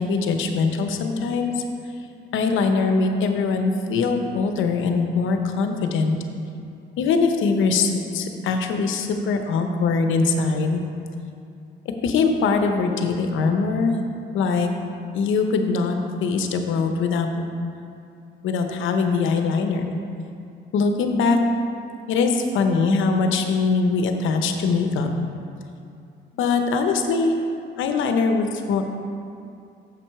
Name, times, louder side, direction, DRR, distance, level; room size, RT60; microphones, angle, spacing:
voice 1, 0.0-1.5 2.3-6.2 7.0-10.8 12.0-14.0 14.3-14.7 15.1-17.5 18.4-19.8 20.7-21.4 22.1-25.1 26.4-27.3 27.8-28.8, left 4 dB, 80° left, 5 dB, 0.8 m, -22 dB
7.4 x 6.1 x 4.7 m, 2.5 s
cardioid pair, 90°, 20 cm